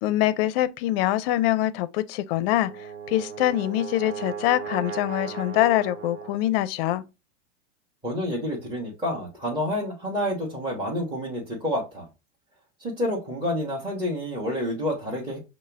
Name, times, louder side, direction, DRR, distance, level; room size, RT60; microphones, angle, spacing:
voice 1, 0.0-2.7 3.1-7.0, left 14 dB, 55° left, 0.5 m, -24 dB
Brass instrument, 2.3-6.6, right 6 dB, 75° right, 1.0 m, -37 dB
voice 2, 8.0-12.1 12.8-15.4, equal, 15° right, 1.3 m, -29 dB
5.4 x 2.1 x 3.4 m
supercardioid pair, 130°, 36 cm